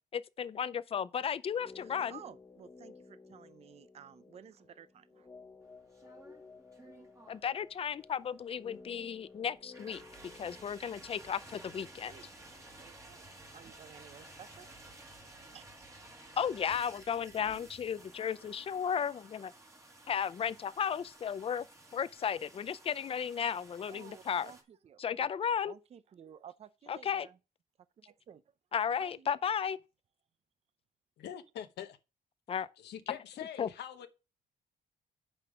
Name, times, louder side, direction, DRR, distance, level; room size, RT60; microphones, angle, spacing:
voice 1, 0.1-2.2 7.3-10.0 10.4-12.1 16.4-19.5 20.1-21.7 21.9-24.5 25.0-25.7 26.9-27.3 28.7-29.8 32.5-32.7 33.1-33.2 33.6-33.7, left 7 dB, 35° left, 0.5 m, -34 dB
sound 1, 1.5-13.6 13.9-14.0, left 4 dB, 15° left, 1.0 m, -56 dB
voice 2, 1.8-5.3 12.1-12.3 12.8-13.2 13.5-14.7 15.5-15.9 23.9-25.3 25.7-27.4 28.0-28.4 29.0-29.3, right 8 dB, 40° right, 0.5 m, -54 dB
sound 2, 5.7-24.6, right 2 dB, 20° right, 1.6 m, -55 dB
voice 3, 31.2-32.0 32.6-34.1, left 10 dB, 80° left, 1.0 m, -44 dB
6.8 x 5.4 x 6.0 m
cardioid pair, 150°, 17 cm